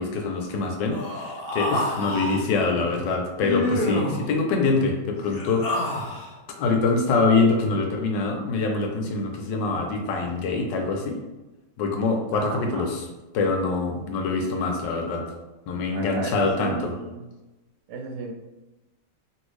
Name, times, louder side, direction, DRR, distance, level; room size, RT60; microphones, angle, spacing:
voice 1, 0.0-5.7 6.6-11.2 11.8-13.0 13.3-15.2 15.7-16.9, left 3 dB, 85° left, 3 dB, 1.3 m, -24 dB
Human voice, 0.9-2.4 3.4-4.3 5.2-6.3, left 1 dB, 70° left, 0.5 m, -28 dB
voice 2, 12.3-12.9 15.9-17.3 17.9-18.3, right 4 dB, 75° right, 2 dB, 1.1 m, -35 dB
3.0 x 2.6 x 3.1 m, 1.1 s
omnidirectional pair, 1.9 m